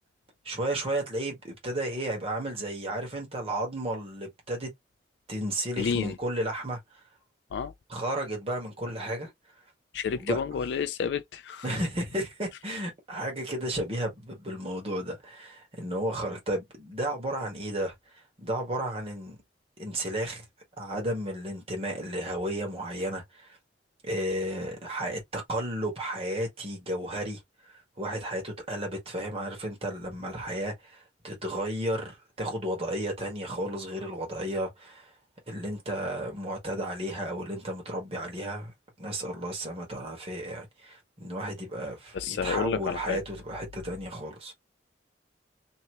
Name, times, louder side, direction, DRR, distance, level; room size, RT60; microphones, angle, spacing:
voice 1, 0.4-4.7 5.3-7.0 7.9-9.3 10.1-10.4 11.6-19.4 19.8-20.4 20.8-23.6 24.0-35.1 35.5-38.7 39.0-44.5, right 1 dB, 35° right, 1.5 m, -33 dB
voice 2, 5.8-6.2 7.5-7.7 9.9-11.7 42.1-43.2, left 6 dB, 70° left, 0.3 m, -30 dB
2.9 x 2.9 x 2.9 m
head